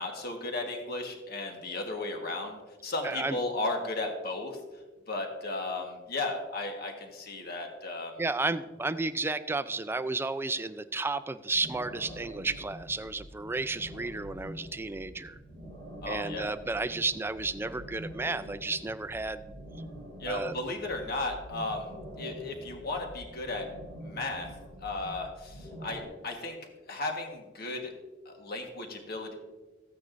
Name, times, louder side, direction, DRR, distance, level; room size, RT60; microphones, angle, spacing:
voice 1, 0.0-4.6 5.1-8.2 16.0-16.5 20.2-23.7 24.0-24.5 24.8-26.6 26.9-27.9 28.2-29.3, left 2 dB, 55° left, 2 dB, 1.4 m, -35 dB
voice 2, 3.0-3.4 8.2-15.4 16.1-19.5 20.3-20.5, right 3 dB, 10° right, 12 dB, 0.4 m, -32 dB
sound 1, 11.5-26.0, equal, 30° left, 3.1 m, -45 dB
15.0 x 9.3 x 2.6 m, 1.2 s
head